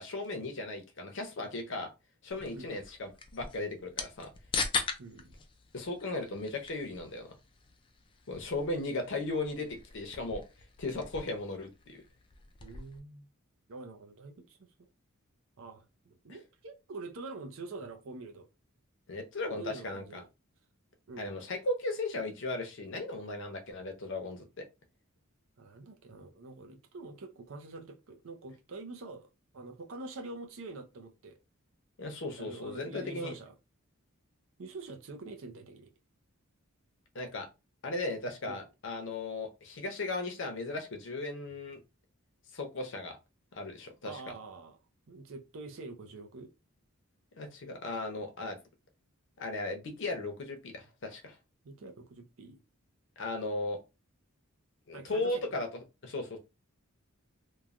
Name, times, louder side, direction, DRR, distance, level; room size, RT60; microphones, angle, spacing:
voice 1, 0.0-1.9 2.2-4.3 5.7-7.3 8.3-10.4 10.8-12.0 19.1-20.2 21.2-24.6 32.0-33.3 37.1-37.5 37.8-41.8 42.5-43.2 43.5-44.3 47.4-48.6 49.4-51.3 53.2-53.8 54.9-56.4, left 2 dB, 55° left, 0.7 m, -36 dB
sound 1, 2.3-13.0, left 5 dB, 25° left, 0.3 m, -41 dB
voice 2, 5.0-5.3 12.6-13.2 13.7-14.9 15.6-18.5 19.6-20.3 21.1-21.3 25.6-29.3 29.5-31.4 32.4-33.5 34.6-35.9 38.5-38.7 44.0-44.8 45.1-46.5 51.6-52.6 54.9-55.6, right 3 dB, 60° right, 0.5 m, -45 dB
3.1 x 2.2 x 2.4 m
head